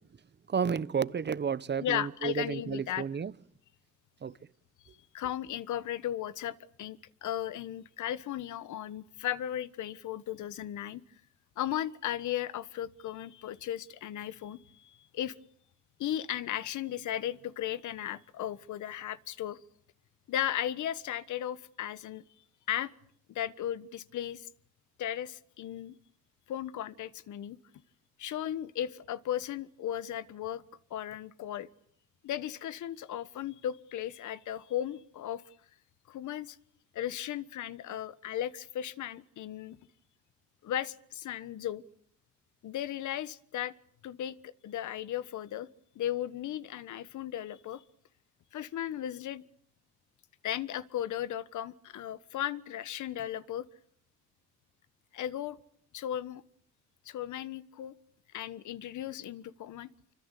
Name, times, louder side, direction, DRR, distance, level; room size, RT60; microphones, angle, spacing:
voice 1, 0.5-3.3 4.2-4.3, right 6 dB, 35° right, 1.1 m, -31 dB
voice 2, 1.8-3.1 5.1-11.0 11.6-15.3 16.0-19.6 20.3-22.2 22.7-22.9 23.3-24.5 25.0-25.9 26.5-27.6 28.2-30.6 30.9-31.7 32.2-35.4 36.1-36.6 36.9-39.8 40.6-41.8 42.6-43.7 44.0-45.7 45.9-47.8 48.5-49.4 50.4-53.7 55.1-55.6 55.9-56.4 57.0-57.9 58.3-59.9, left 11 dB, 75° left, 1.4 m, -36 dB
26.5 x 24.5 x 8.4 m
cardioid pair, 90°, 30 cm